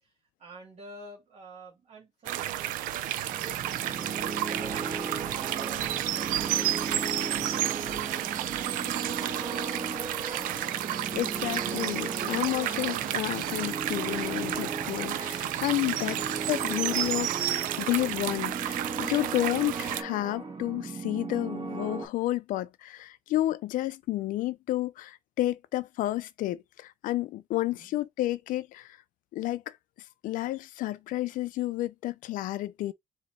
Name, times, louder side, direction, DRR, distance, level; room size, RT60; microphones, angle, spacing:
voice 1, 0.0-4.8 5.0-5.8 27.6-28.0, right 2 dB, 55° right, 2.2 m, -51 dB
sound 1, 2.3-20.0, right 13 dB, 90° right, 0.4 m, -31 dB
sound 2, 3.3-22.0, right 3 dB, 35° right, 1.8 m, -37 dB
voice 2, 11.1-29.0 29.3-29.8 30.2-32.9, left 15 dB, 80° left, 0.5 m, -31 dB
4.0 x 2.9 x 4.4 m
cardioid pair, 95°, 14 cm